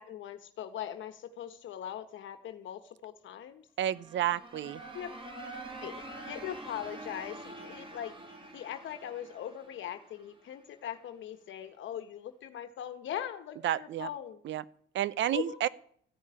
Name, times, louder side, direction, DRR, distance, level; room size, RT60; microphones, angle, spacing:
voice 1, 0.0-3.6 4.9-5.5 5.8-8.1 8.5-14.4 15.3-15.6, left 10 dB, 75° left, 9 dB, 1.3 m, -41 dB
voice 2, 3.8-4.8 13.6-14.1 14.4-14.6 14.9-15.7, right 12 dB, 70° right, 20 dB, 0.7 m, -30 dB
sound 1, 3.9-10.6, right 2 dB, 25° right, 3.0 m, -46 dB
14.5 x 7.4 x 10.0 m, 0.62 s
cardioid pair, 90°, 20 cm